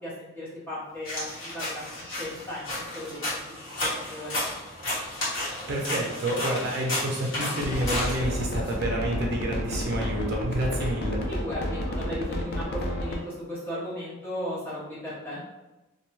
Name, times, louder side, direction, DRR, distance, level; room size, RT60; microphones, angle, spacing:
voice 1, 0.0-3.6 4.1-4.4 11.3-15.4, equal, 10° left, -10 dB, 0.7 m, -36 dB
sound 1, 1.1-8.7, left 1 dB, 80° left, 1.2 m, -33 dB
voice 2, 5.3-11.2, right 1 dB, 55° right, -1 dB, 0.5 m, -29 dB
sound 2, 7.6-13.2, equal, 50° left, 0.4 m, -30 dB
2.6 x 2.2 x 3.0 m, 1.0 s
head